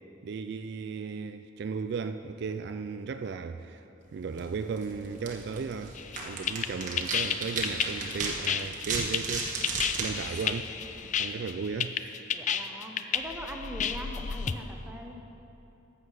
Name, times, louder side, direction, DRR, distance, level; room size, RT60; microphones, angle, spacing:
voice 1, 0.2-3.8 4.1-10.7 11.2-12.2, right 5 dB, 60° right, 0.3 m, -36 dB
sound 1, 4.3-11.2, right 3 dB, 45° right, 1.3 m, -36 dB
sound 2, 6.0-14.5, left 7 dB, 40° left, 0.4 m, -31 dB
voice 2, 12.3-15.1, equal, 10° right, 1.0 m, -41 dB
12.5 x 7.4 x 6.4 m
head